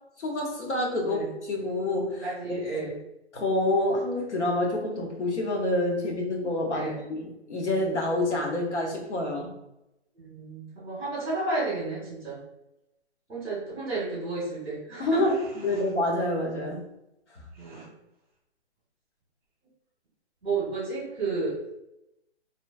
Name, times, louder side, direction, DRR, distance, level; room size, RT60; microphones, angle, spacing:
voice 1, 0.2-2.2 2.7-2.8 3.3-9.5 15.0-15.3 15.6-16.8, left 2 dB, 90° left, 0 dB, 1.0 m, -27 dB
voice 2, 2.2-2.9 6.7-7.0 8.3-8.4 10.2-12.4 13.3-15.3 17.5-17.9 20.4-21.8, right 3 dB, ahead, -16 dB, 0.4 m, -31 dB
3.0 x 2.1 x 2.5 m, 0.87 s
hypercardioid pair, 155°, 34 cm